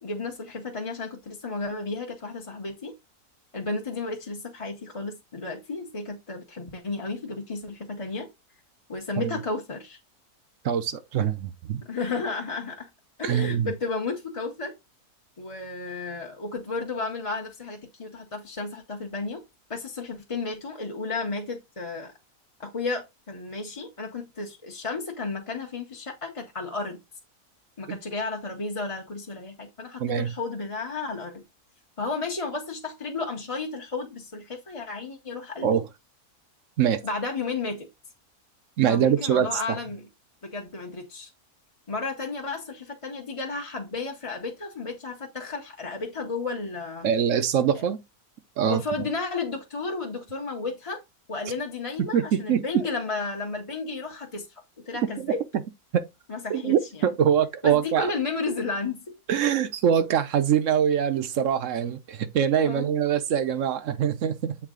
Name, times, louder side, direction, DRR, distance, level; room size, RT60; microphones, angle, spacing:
voice 1, 0.0-2.9 3.5-8.3 8.9-10.0 11.9-12.9 13.2-14.7 15.4-19.4 19.7-22.1 22.6-27.0 27.8-31.4 32.0-35.8 37.0-37.9 38.9-40.1 40.4-41.3 41.9-47.1 48.6-51.0 51.3-54.5 54.9-55.4 56.3-57.0 57.6-59.2 62.6-62.9, left 3 dB, 25° left, 0.9 m, -33 dB
voice 2, 10.6-11.8 13.2-13.7 27.9-28.0 30.0-30.3 35.6-35.8 36.8-37.0 38.8-39.8 47.0-48.0 48.6-48.8 52.1-52.8 55.2-55.3 55.9-56.0 56.5-58.1 59.3-64.6, right 8 dB, 60° right, 1.0 m, -24 dB
7.4 x 3.9 x 3.8 m
omnidirectional pair, 1.6 m